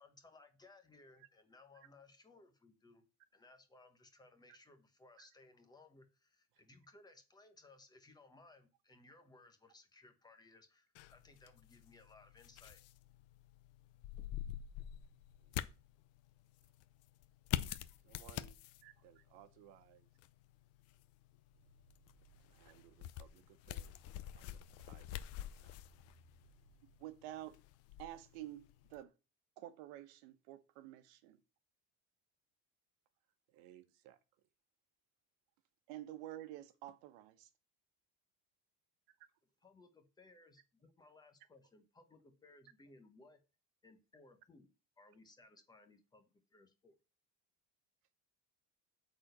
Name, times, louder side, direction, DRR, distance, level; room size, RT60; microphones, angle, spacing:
voice 1, 0.0-3.0 3.3-12.8 39.6-43.4 43.8-44.7 45.0-47.0, left 2 dB, 10° left, 1.1 m, -62 dB
sound 1, 10.9-29.0, left 13 dB, 45° left, 0.6 m, -47 dB
voice 2, 18.0-18.6 19.0-20.1 22.4-24.0 24.3-25.2 25.5-25.8 33.5-34.2, right 12 dB, 65° right, 1.2 m, -62 dB
voice 3, 18.8-19.2 27.0-27.6 28.0-29.1 29.6-31.4 35.9-37.5, right 13 dB, 90° right, 1.2 m, -50 dB
sound 2, 21.5-27.0, right 3 dB, 10° right, 3.0 m, -68 dB
8.7 x 4.3 x 6.6 m
cardioid pair, 170°, 33 cm